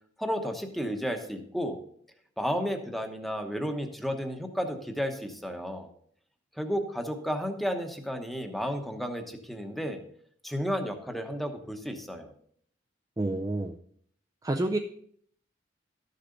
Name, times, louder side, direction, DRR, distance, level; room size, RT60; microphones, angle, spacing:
voice 1, 0.2-1.8 2.4-5.9 6.6-10.0 10.4-12.3, equal, ahead, 5 dB, 1.0 m, -32 dB
voice 2, 13.2-13.8 14.4-14.8, right 2 dB, 20° right, 3 dB, 0.4 m, -28 dB
13.0 x 6.7 x 3.9 m, 0.63 s
head